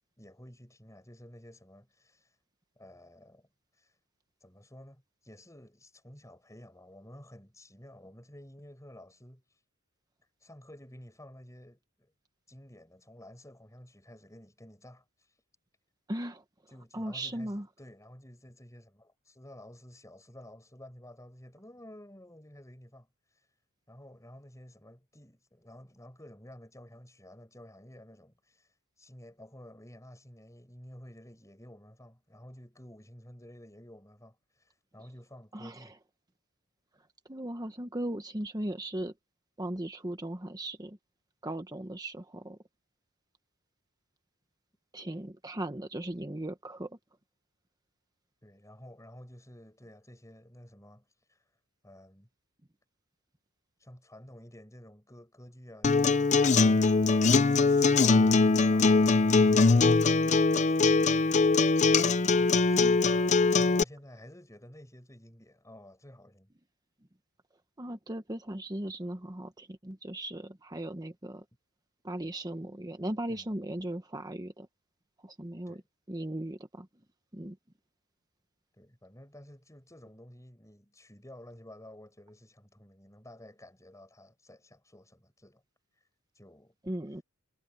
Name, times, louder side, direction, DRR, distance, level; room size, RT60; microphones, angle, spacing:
voice 1, 0.2-2.4 2.8-3.5 3.7-4.0 4.4-9.6 10.4-12.1 12.5-15.4 16.7-23.5 23.9-36.0 48.4-51.5 51.8-52.3 53.8-59.3 60.7-61.7 62.4-66.5 73.3-73.5 75.7-75.9 78.8-85.6 86.3-86.7, left 1 dB, 15° left, 7.5 m, -52 dB
voice 2, 16.1-16.4 16.9-17.6 35.5-35.9 37.3-39.1 39.6-41.0 41.4-42.6 44.9-46.9 67.8-71.4 72.0-74.7 75.2-75.8 76.1-76.9 77.3-77.6 86.9-87.2, right 1 dB, 15° right, 1.1 m, -37 dB
Acoustic guitar, 55.8-63.8, left 3 dB, 30° left, 0.6 m, -22 dB
head